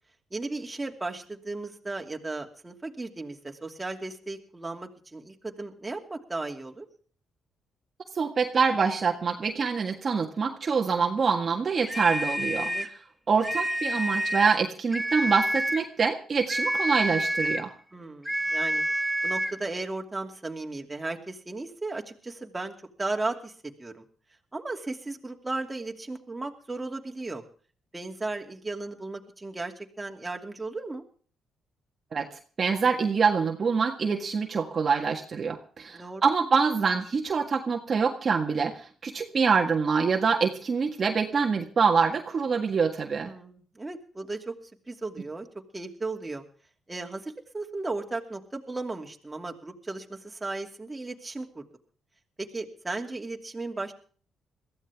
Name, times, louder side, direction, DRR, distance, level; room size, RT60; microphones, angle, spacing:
voice 1, 0.3-6.9 12.6-12.9 17.9-24.0 24.5-27.4 27.9-31.0 35.9-36.2 43.2-44.5 44.9-45.5 45.7-46.4 46.9-51.6 52.4-53.9, right 2 dB, 15° right, 2 dB, 2.6 m, -35 dB
voice 2, 8.1-12.9 13.3-17.7 32.1-32.3 32.6-43.3, right 5 dB, 40° right, 2 dB, 1.7 m, -25 dB
sound 1, 11.9-13.0 13.4-14.6 14.9-15.9 16.5-17.7 18.2-19.6, right 1 dB, ahead, 1.6 m, -28 dB
22.0 x 15.0 x 3.6 m, 0.42 s
cardioid pair, 90°, 0 cm